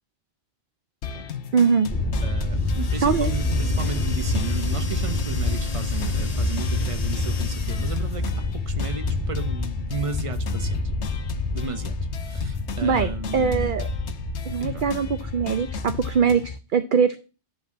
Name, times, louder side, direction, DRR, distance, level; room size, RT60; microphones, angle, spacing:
sound 1, 1.0-16.6, left 7 dB, 75° left, 1.1 m, -36 dB
voice 1, 1.5-1.9 3.0-3.3 12.8-13.9 14.5-17.2, right 6 dB, 55° right, 0.7 m, -22 dB
Thunder, 1.9-16.1, left 2 dB, 5° left, 2.8 m, -27 dB
voice 2, 2.2-10.8 11.5-13.8 14.6-14.8, right 4 dB, 30° right, 0.9 m, -34 dB
sound 2, 2.5-8.4, left 4 dB, 40° left, 0.8 m, -39 dB
10.5 x 4.1 x 7.3 m
omnidirectional pair, 1.2 m